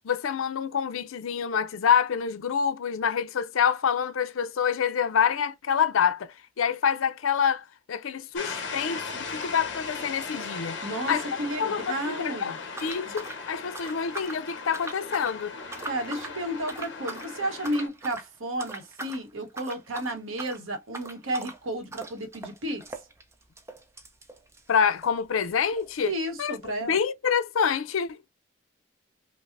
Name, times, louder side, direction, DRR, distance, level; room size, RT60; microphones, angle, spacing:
voice 1, 0.0-6.3 6.6-10.8 11.1-11.2 11.6-15.5 24.7-26.1 26.4-28.2, left 7 dB, 85° left, 0.5 m, -27 dB
sound 1, 8.4-17.9, left 4 dB, 65° left, 1.0 m, -38 dB
voice 2, 10.8-12.6 13.0-13.1 15.9-22.8 26.0-27.0, right 1 dB, 85° right, 1.0 m, -32 dB
sound 2, 12.7-14.4 14.7-15.4 15.7-16.4 16.7-17.3 17.6-18.3 18.6-19.2 19.5-25.2 25.5-25.6 25.8-25.9 26.5-26.6, right 2 dB, 15° right, 0.5 m, -41 dB
5.3 x 2.0 x 2.5 m
head